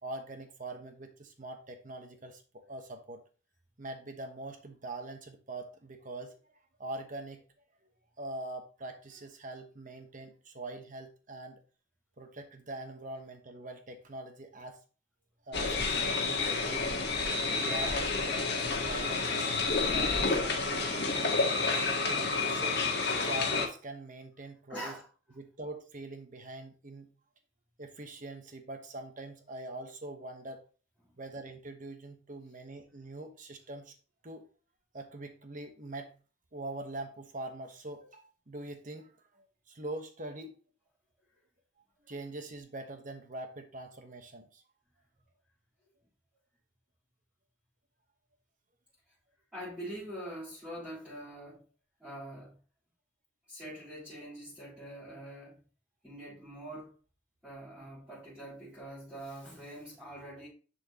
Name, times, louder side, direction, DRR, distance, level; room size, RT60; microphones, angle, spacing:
voice 1, 0.0-3.2 3.8-6.4 6.8-7.5 8.2-11.6 12.2-14.8 15.5-17.0 17.6-19.2 19.6-21.3 21.8-22.8 23.3-25.0 25.4-27.1 27.8-30.6 31.2-33.9 34.2-34.4 34.9-36.2 36.5-40.6 42.1-44.6, right 2 dB, 40° right, 1.1 m, -43 dB
sound 1, 15.5-23.7, left 4 dB, 60° left, 1.5 m, -30 dB
voice 2, 24.7-25.1 31.0-31.2 49.5-51.7 52.0-52.6 53.5-55.6 56.0-57.0 57.4-60.5, right 1 dB, 5° right, 3.5 m, -44 dB
10.5 x 4.5 x 2.9 m
head